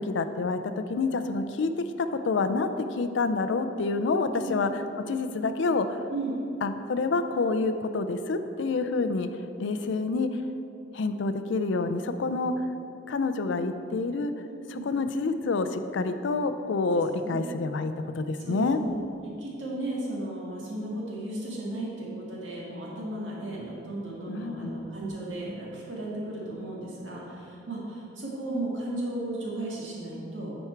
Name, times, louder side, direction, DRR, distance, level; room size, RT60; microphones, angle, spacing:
voice 1, 0.0-4.7 5.0-6.0 6.6-9.3 9.6-10.4 10.9-12.6 13.1-14.3 14.7-18.8 24.3-24.7, left 3 dB, 65° left, 10 dB, 0.4 m, -28 dB
voice 2, 14.5-14.9 17.2-17.4 18.4-18.9 19.4-30.6, right 1 dB, 75° right, -5 dB, 1.9 m, -35 dB
9.3 x 4.5 x 4.5 m, 2.7 s
head